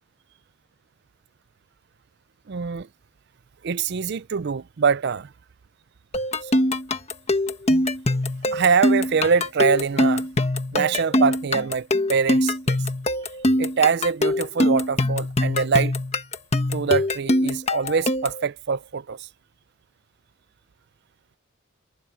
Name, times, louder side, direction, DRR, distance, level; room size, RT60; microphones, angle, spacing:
voice 1, 2.5-2.9 3.6-5.3 6.4-6.5 8.5-10.3 10.7-12.8 13.6-15.9 16.7-19.3, right 5 dB, 50° right, 0.4 m, -23 dB
sound 1, 6.1-18.4, left 1 dB, 30° left, 1.3 m, -23 dB
head